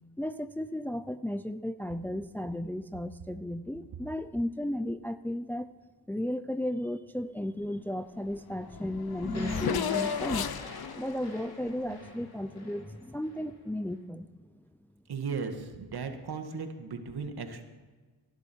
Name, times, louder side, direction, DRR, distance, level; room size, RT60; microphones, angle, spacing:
voice 1, 0.2-5.7 6.1-10.5 11.0-14.3, left 1 dB, 5° left, 11 dB, 0.6 m, -34 dB
Race car auto racing / Accelerating revving vroom, 8.3-8.4 8.6-12.6, left 8 dB, 55° left, 1.0 m, -35 dB
sound 1, 9.2-13.5, left 1 dB, 35° left, 6.0 m, -41 dB
voice 2, 15.1-17.6, right 5 dB, 60° right, 6 dB, 2.1 m, -36 dB
18.5 x 11.5 x 4.6 m, 1.3 s
cardioid pair, 55°, 43 cm